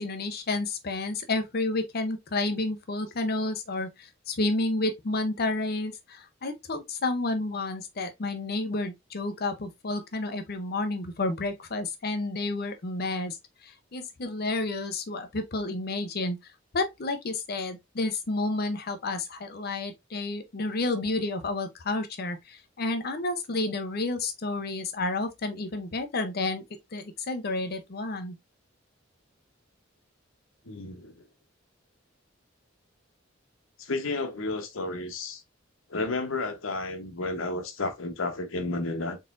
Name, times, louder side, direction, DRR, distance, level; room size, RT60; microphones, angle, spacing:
voice 1, 0.0-13.4 13.6-26.6 26.9-28.4, left 2 dB, 50° left, 0.7 m, -30 dB
voice 2, 30.7-31.2 33.8-35.4 35.9-39.2, left 2 dB, 90° left, 1.0 m, -32 dB
4.0 x 3.8 x 2.4 m
head